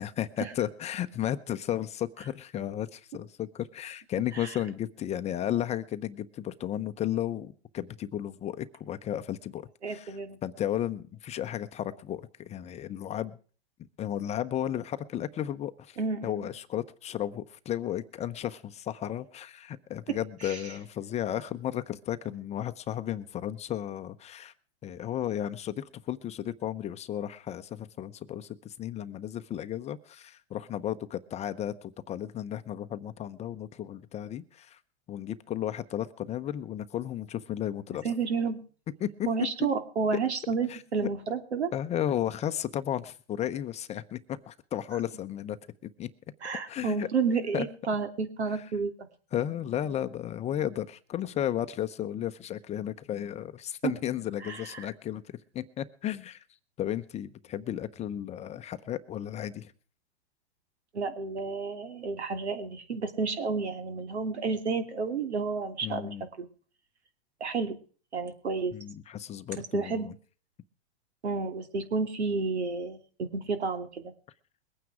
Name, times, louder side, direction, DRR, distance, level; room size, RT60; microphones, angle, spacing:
voice 1, 0.0-13.4 14.0-24.5 24.8-34.8 35.1-38.1 39.0-39.3 40.7-41.1 41.7-45.6 45.8-46.1 46.7-47.1 47.5-47.7 48.5-48.6 49.3-56.4 56.8-59.7 65.8-66.3 68.7-70.1, left 11 dB, 20° left, 10 dB, 0.7 m, -34 dB
voice 2, 9.8-10.4 16.0-16.5 20.4-20.6 38.0-38.6 39.3-41.7 46.4-49.1 53.8-53.9 54.4-54.9 60.9-66.5 67.4-67.8 68.1-68.7 69.7-70.1 71.2-73.0 73.3-74.1, right 5 dB, 90° right, 8 dB, 2.8 m, -31 dB
22.0 x 9.3 x 4.9 m, 0.41 s
hypercardioid pair, 130°, 32 cm